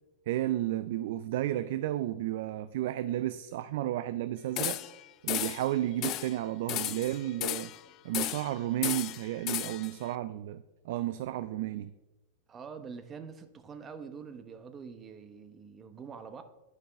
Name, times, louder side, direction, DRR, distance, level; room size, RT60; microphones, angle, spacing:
voice 1, 0.3-4.8 5.2-7.7 8.0-11.9, right 14 dB, 65° right, 0.3 m, -32 dB
sound 1, 4.6-5.0 5.3-5.7 6.0-6.3 6.7-7.8 8.1-8.5 8.8-9.9, left 14 dB, 40° left, 0.4 m, -34 dB
voice 2, 12.5-16.4, right 6 dB, 25° right, 0.8 m, -45 dB
10.5 x 5.2 x 3.5 m
hypercardioid pair, 105°, 0 cm